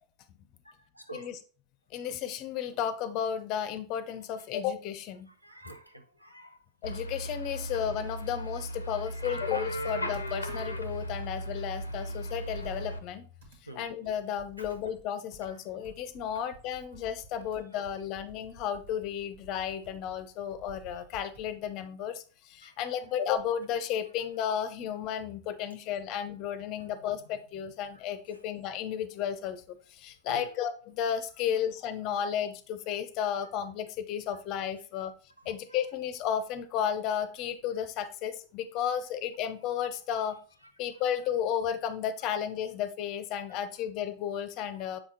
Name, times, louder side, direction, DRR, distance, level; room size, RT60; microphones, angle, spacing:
voice 1, 0.6-1.3 5.4-6.6 8.9-9.5 13.7-13.9 14.6-14.7 15.4-15.5 17.3-17.4 22.6-23.0 28.3-28.4 30.3-30.5 35.4-35.8 38.7-38.8 43.5-43.6, right 1 dB, 90° right, 6 dB, 0.8 m, -49 dB
voice 2, 1.9-5.3 6.8-13.2 13.7-35.1 35.5-40.4 40.8-45.0, left 9 dB, 40° left, 13 dB, 0.6 m, -33 dB
sound 1, 6.8-13.0, equal, 85° left, 0.6 m, -36 dB
Computer keyboard, 9.8-10.9 11.4-11.5 11.8-15.1 15.3-21.8, right 3 dB, 65° right, 1.6 m, -53 dB
7.3 x 4.9 x 2.8 m, 0.39 s
figure-of-eight pair, 90°, 0 cm